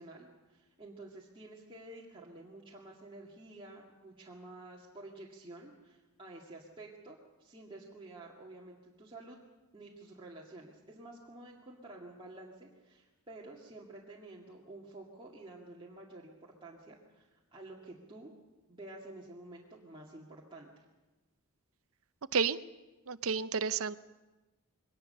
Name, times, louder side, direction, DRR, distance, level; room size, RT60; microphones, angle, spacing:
voice 1, 0.0-9.4 9.7-18.3 18.7-20.7, right 2 dB, 25° right, -4 dB, 2.1 m, -50 dB
voice 2, 23.1-23.9, right 6 dB, 65° right, 14 dB, 0.7 m, -30 dB
22.5 x 19.0 x 6.6 m, 1.1 s
head